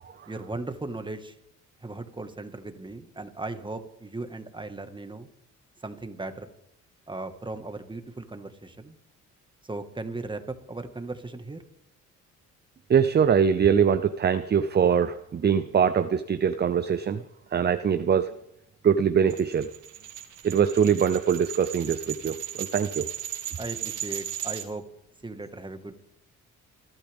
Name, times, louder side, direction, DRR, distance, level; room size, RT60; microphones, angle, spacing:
voice 1, 0.3-1.4 1.8-5.3 5.8-6.5 7.1-9.0 9.6-11.6 23.6-24.8 25.2-25.9, right 2 dB, 15° right, 8 dB, 1.7 m, -37 dB
voice 2, 12.9-17.2 17.5-18.3 18.8-19.7 20.4-23.1, right 7 dB, 35° right, 12 dB, 0.7 m, -23 dB
sound 1, 19.3-24.6, right 11 dB, 85° right, 2.2 m, -36 dB
29.0 x 12.5 x 3.6 m, 0.77 s
cardioid pair, 90°, 30 cm